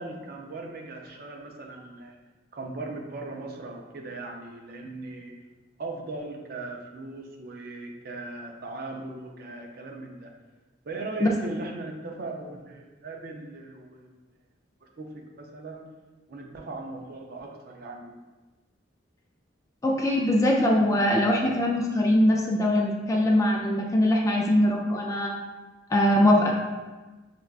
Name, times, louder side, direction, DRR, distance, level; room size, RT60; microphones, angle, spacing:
voice 1, 0.0-2.2 2.5-5.3 5.8-10.3 10.9-14.2 14.8-15.9 16.3-18.2, right 2 dB, 50° right, 1 dB, 0.5 m, -38 dB
voice 2, 19.8-25.3 25.9-26.5, left 1 dB, 15° left, 0 dB, 0.3 m, -22 dB
6.0 x 2.2 x 2.3 m, 1.2 s
head